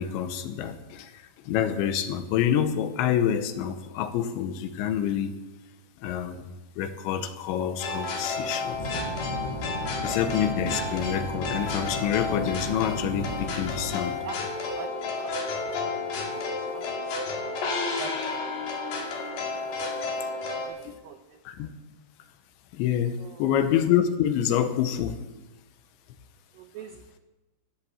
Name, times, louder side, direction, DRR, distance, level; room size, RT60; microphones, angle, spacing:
voice 1, 0.0-5.3 6.0-8.8 10.0-14.2 20.8-21.0 21.5-21.7 22.7-25.2, left 9 dB, 90° left, 10 dB, 3.3 m, -27 dB
sound 1, 7.8-20.7, left 3 dB, 65° left, 4.2 m, -32 dB
sound 2, 8.7-13.9, left 2 dB, 10° left, 4.4 m, -35 dB
voice 2, 14.2-15.9 16.2-17.4 17.8-18.1 19.3-20.0 20.3-20.8 21.0-21.4 23.2-23.5 26.5-27.2, right 8 dB, 85° right, 6 dB, 2.0 m, -45 dB
14.0 x 10.0 x 7.1 m, 1.1 s
omnidirectional pair, 5.1 m